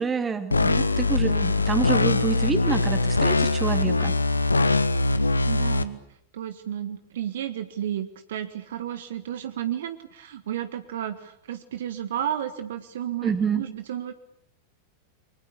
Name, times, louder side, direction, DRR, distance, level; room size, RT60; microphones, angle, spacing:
voice 1, 0.0-4.1 13.2-13.6, right 5 dB, 15° right, 8 dB, 3.0 m, -27 dB
sound 1, 0.5-5.8, left 2 dB, 80° left, 1.3 m, -22 dB
voice 2, 5.4-6.0 6.3-14.1, right 10 dB, 60° right, 10 dB, 1.5 m, -32 dB
29.5 x 23.5 x 8.4 m, 0.69 s
figure-of-eight pair, 90°, 0 cm